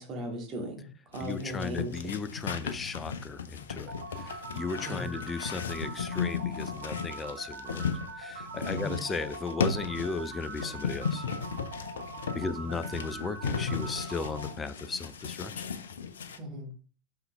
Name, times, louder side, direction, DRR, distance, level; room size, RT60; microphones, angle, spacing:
voice 1, 0.0-2.0 4.9-5.1 8.7-9.0 12.3-12.5 16.4-16.7, equal, 30° right, 0 dB, 2.2 m, -37 dB
sound 1, 1.1-16.4, left 6 dB, 65° left, 0.6 m, -36 dB
voice 2, 1.2-7.9 8.2-11.3 12.3-15.7, left 4 dB, 15° left, 13 dB, 0.5 m, -36 dB
sound 2, 3.9-14.5, right 3 dB, 65° right, 2.0 m, -42 dB
5.7 x 5.6 x 3.4 m, 0.39 s
figure-of-eight pair, 90°, 0 cm